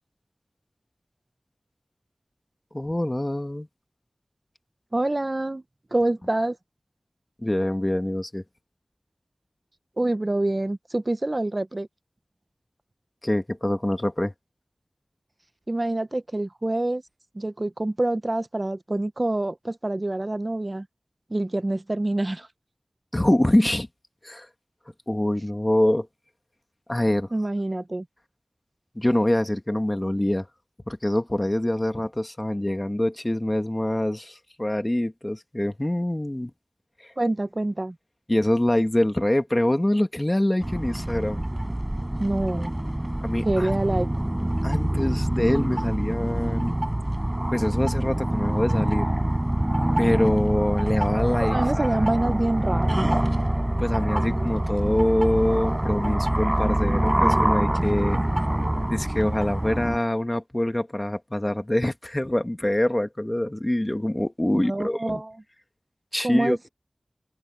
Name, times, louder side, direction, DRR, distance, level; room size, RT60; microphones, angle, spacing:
voice 1, 2.7-3.7 7.4-8.4 13.2-14.3 23.1-23.9 24.2-24.5 25.1-26.1 26.9-27.3 29.0-30.5 30.9-36.5 37.0-37.1 38.3-41.4 43.2-43.8 44.6-46.8 47.5-49.1 50.0-52.1 53.8-58.2 58.9-65.2 66.1-66.6, left 1 dB, 25° left, 2.0 m, -25 dB
voice 2, 4.9-5.6 5.9-6.6 10.0-11.9 15.7-17.0 17.3-20.9 21.3-22.5 27.3-28.0 37.2-38.0 42.2-42.7 43.4-44.1 51.5-53.1 58.2-58.3 64.5-65.4 66.2-66.7, right 2 dB, 40° right, 0.8 m, -26 dB
sound 1, 40.6-60.0, right 1 dB, 20° right, 5.1 m, -25 dB
wide cardioid pair, 55°, 0 cm